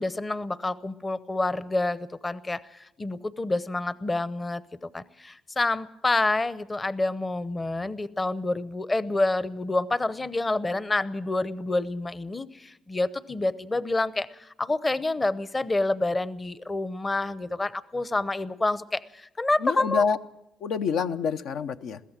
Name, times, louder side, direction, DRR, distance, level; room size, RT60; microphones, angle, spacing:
voice 1, 0.0-20.0, left 2 dB, 25° left, 16 dB, 0.8 m, -28 dB
voice 2, 19.6-20.2 20.6-22.0, left 6 dB, 80° left, 8 dB, 0.7 m, -27 dB
22.0 x 16.0 x 7.4 m, 0.86 s
cardioid pair, 85°, 0 cm